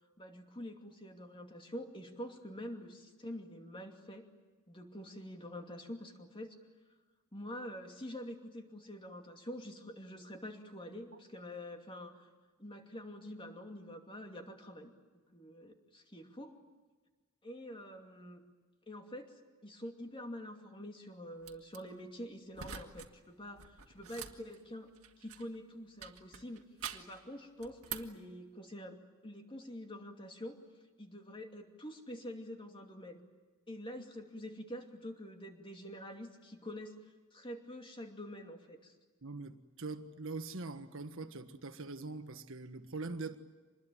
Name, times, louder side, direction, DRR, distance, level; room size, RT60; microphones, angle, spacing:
voice 1, 0.2-4.3 4.7-6.6 7.3-12.3 12.6-14.9 15.3-16.6 17.4-18.4 18.9-26.6 26.9-29.0 29.2-30.6 31.0-33.2 33.7-37.0 37.3-38.9, equal, 25° left, 2.6 m, -46 dB
sound 1, 21.4-21.8 22.5-23.1 23.4-25.6 26.0-27.2 27.6-28.2, right 8 dB, 85° right, 2.0 m, -46 dB
voice 2, 39.2-43.4, right 3 dB, 65° right, 1.6 m, -43 dB
26.0 x 21.0 x 9.2 m
head